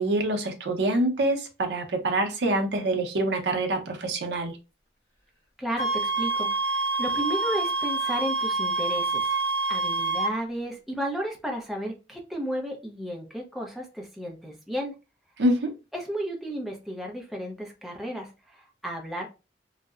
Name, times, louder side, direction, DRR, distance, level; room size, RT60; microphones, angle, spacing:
voice 1, 0.0-4.5 15.4-15.7, right 1 dB, 80° right, 0.6 m, -25 dB
voice 2, 5.6-9.3 9.7-14.9 15.9-19.3, equal, ahead, 0.5 m, -33 dB
sound 1, 5.8-10.3, right 3 dB, 15° left, 1.1 m, -27 dB
2.6 x 2.0 x 2.3 m
head